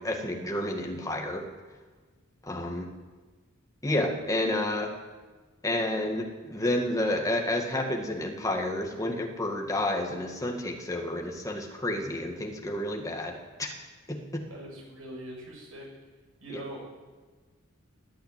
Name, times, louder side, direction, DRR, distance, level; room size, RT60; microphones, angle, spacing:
voice 1, 0.0-1.4 2.4-2.9 3.8-4.9 5.6-13.7 14.1-14.4 16.5-16.6, left 1 dB, 15° left, 2 dB, 1.9 m, -30 dB
voice 2, 14.5-15.9 16.4-17.0, right 1 dB, 75° right, -1 dB, 6.6 m, -42 dB
17.0 x 9.4 x 8.9 m, 1.3 s
head